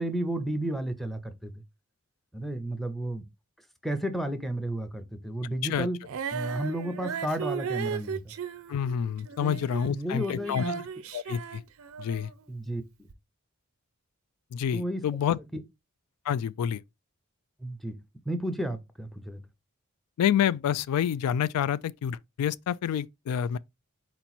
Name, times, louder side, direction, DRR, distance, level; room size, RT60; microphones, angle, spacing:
voice 1, 0.0-1.6 2.3-3.2 3.8-6.0 6.3-8.3 9.4-10.8 12.5-13.1 14.7-15.0 17.6-18.0 18.3-19.4, right 1 dB, ahead, 0.5 m, -32 dB
Female singing, 6.0-12.4 13.1-13.2, right 7 dB, 65° right, 0.4 m, -36 dB
voice 2, 8.7-10.6 11.1-11.6 12.0-12.3 14.5-15.4 16.2-16.8 20.2-23.6, left 9 dB, 90° left, 0.3 m, -28 dB
4.3 x 2.9 x 4.0 m
head